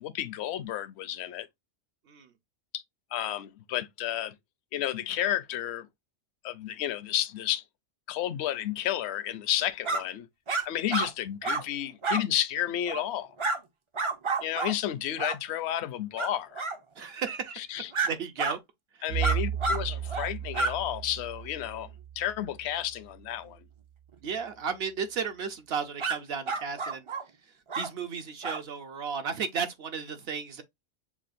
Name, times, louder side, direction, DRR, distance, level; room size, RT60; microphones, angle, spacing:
voice 1, 0.0-1.5 2.7-2.8 3.1-4.3 4.7-5.9 6.4-7.6 8.1-10.3 10.7-13.4 14.4-16.6 17.6-17.9 19.0-21.9 22.2-23.7, left 12 dB, 65° left, 0.8 m, -31 dB
sound 1, 9.8-10.0 10.5-10.6 10.9-11.1 11.4-11.6 12.0-12.2 12.9-13.0 13.4-13.6 13.9-14.7 15.2-15.4 16.2-16.3 16.5-16.8 17.9-18.1 18.4-18.6 19.2-19.8 20.1-20.3 20.5-20.7 26.0-26.2 26.5-27.2 27.7-27.9 28.4-28.6, right 3 dB, 45° right, 0.4 m, -29 dB
voice 2, 17.0-17.6 18.0-18.6 19.0-19.1 24.2-27.1 27.8-30.6, right 6 dB, 60° right, 0.8 m, -34 dB
Bowed string instrument, 19.1-23.3, right 10 dB, 85° right, 1.0 m, -34 dB
7.1 x 2.4 x 2.5 m
omnidirectional pair, 1.3 m